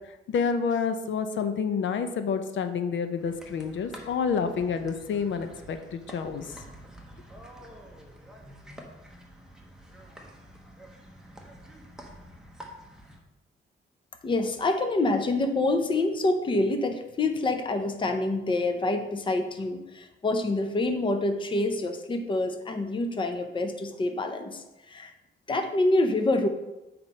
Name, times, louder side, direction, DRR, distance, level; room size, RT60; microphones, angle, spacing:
voice 1, 0.3-6.6, left 6 dB, 70° left, 8 dB, 0.6 m, -29 dB
sound 1, 3.2-13.2, equal, 5° right, 0.9 m, -48 dB
voice 2, 14.2-25.1 25.5-26.5, left 2 dB, 25° left, 6 dB, 0.6 m, -26 dB
8.0 x 4.3 x 5.3 m, 0.98 s
wide cardioid pair, 170°, 20 cm